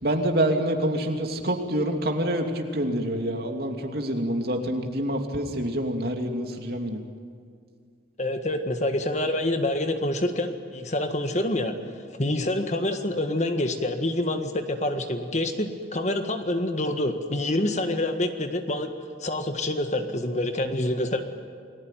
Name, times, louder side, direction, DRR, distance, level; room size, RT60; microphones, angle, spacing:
voice 1, 0.0-7.0, right 1 dB, 55° right, 3 dB, 2.8 m, -27 dB
voice 2, 8.2-11.7 12.2-18.9 19.2-21.2, left 1 dB, 40° left, 6 dB, 1.7 m, -27 dB
29.0 x 19.5 x 9.2 m, 2.1 s
head